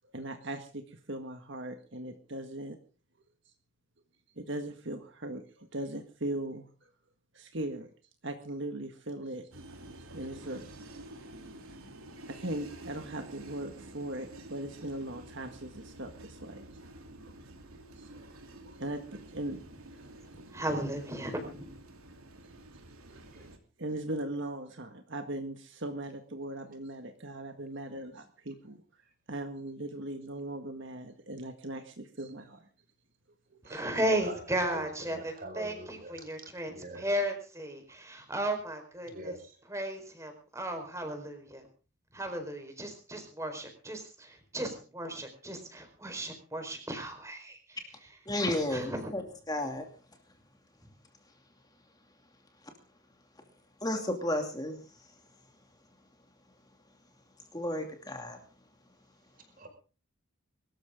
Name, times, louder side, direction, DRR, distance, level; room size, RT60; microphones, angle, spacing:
voice 1, 0.1-2.8 4.4-6.7 7.3-7.9 8.2-9.5 10.1-10.7 12.3-16.6 17.2-17.3 18.0-18.1 18.6-19.6 22.4-22.5 23.1-23.2 23.8-28.8 29.3-32.6 33.7-33.8, right 1 dB, 55° right, 6 dB, 1.7 m, -39 dB
sound 1, 9.5-23.6, right 1 dB, 80° right, 3.2 m, -49 dB
voice 2, 20.3-21.7 33.7-39.3 39.7-41.7 42.1-47.8 48.7-49.2, right 1 dB, 15° right, 6 dB, 4.5 m, -35 dB
voice 3, 33.6-34.4 34.7-37.1 39.0-39.6 59.6-59.7, right 1 dB, 40° right, 5 dB, 5.4 m, -44 dB
voice 4, 48.3-49.9 53.8-55.1 57.5-58.4, left 1 dB, 20° left, 4 dB, 2.5 m, -33 dB
24.0 x 13.5 x 3.7 m, 0.37 s
head